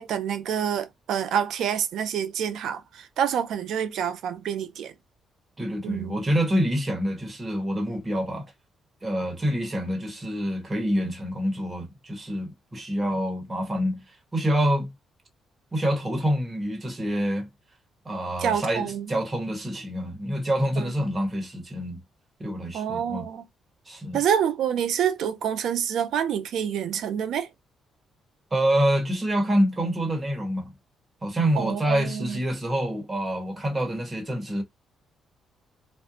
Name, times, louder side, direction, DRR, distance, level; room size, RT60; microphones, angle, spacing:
voice 1, 0.0-4.9 5.8-6.2 18.4-19.1 20.8-20.9 22.7-23.4 24.1-27.5 31.6-32.4, right 8 dB, 75° right, 0.4 m, -27 dB
voice 2, 5.6-8.5 9.0-14.0 14.3-14.9 15.7-17.5 18.0-22.0 22.4-23.3 23.9-24.2 28.5-30.7 31.2-34.6, equal, 25° right, 1.1 m, -26 dB
2.5 x 2.1 x 2.7 m
cardioid pair, 90°, 0 cm